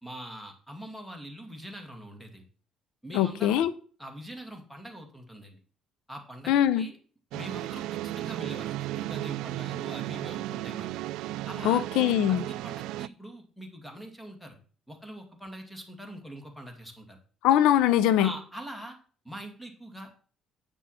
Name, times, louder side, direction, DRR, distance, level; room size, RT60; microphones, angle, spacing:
voice 1, 0.0-2.4 3.0-3.6 4.0-5.6 6.1-7.0 7.3-10.9 11.5-11.9 12.3-14.6 14.9-17.2 18.2-19.0 19.2-20.3, right 1 dB, 5° left, 2.2 m, -43 dB
voice 2, 3.1-3.7 6.5-6.9 11.6-12.4 17.4-18.3, left 11 dB, 90° left, 0.6 m, -22 dB
sound 1, 7.3-13.1, right 15 dB, 85° right, 0.3 m, -34 dB
9.0 x 6.2 x 5.6 m
cardioid pair, 140°, 0 cm